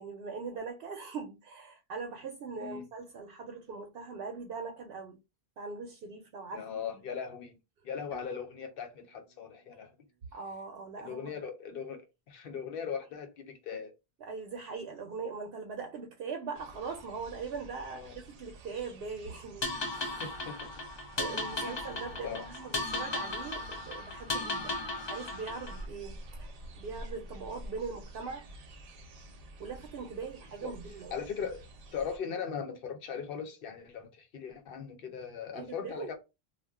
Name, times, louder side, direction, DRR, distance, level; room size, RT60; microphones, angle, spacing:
voice 1, 0.0-5.2 5.6-6.7 10.3-11.4 14.2-19.7 19.9-20.3 21.2-24.8 25.0-28.5 29.6-31.2 35.5-36.1, right 5 dB, 75° right, 0.8 m, -41 dB
voice 2, 6.5-7.6 7.8-9.9 11.0-13.9 17.9-18.1 20.2-20.7 21.6-21.7 22.2-22.5 30.6-30.7 31.1-31.6 31.9-36.2, left 7 dB, 65° left, 0.8 m, -39 dB
sound 1, 8.1-12.2, right 6 dB, 20° right, 0.9 m, -59 dB
sound 2, 16.5-32.2, right 1 dB, 50° right, 0.5 m, -49 dB
sound 3, 19.6-25.9, left 2 dB, 45° left, 0.3 m, -36 dB
2.3 x 2.1 x 3.4 m
omnidirectional pair, 1.0 m